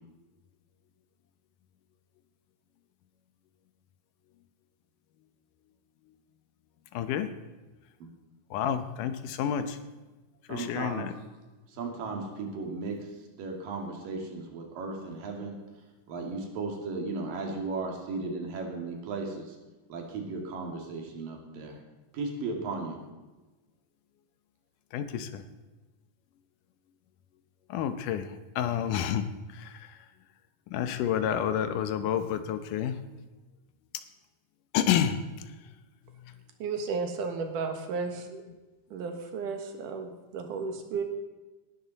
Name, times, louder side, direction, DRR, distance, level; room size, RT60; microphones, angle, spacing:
voice 1, 6.9-7.3 8.5-9.8 10.5-11.1 24.9-25.4 27.7-28.2 28.6-29.2 30.7-32.9 34.7-35.2, left 9 dB, 75° left, 10 dB, 2.4 m, -29 dB
voice 2, 10.5-11.1 11.7-13.1 13.4-15.6 16.1-19.6 19.9-21.8 22.1-23.0, right 3 dB, 90° right, 2 dB, 3.9 m, -35 dB
voice 3, 36.6-38.4 38.9-41.0, right 4 dB, 75° right, 5 dB, 2.9 m, -33 dB
18.5 x 11.5 x 4.1 m, 1.2 s
omnidirectional pair, 3.8 m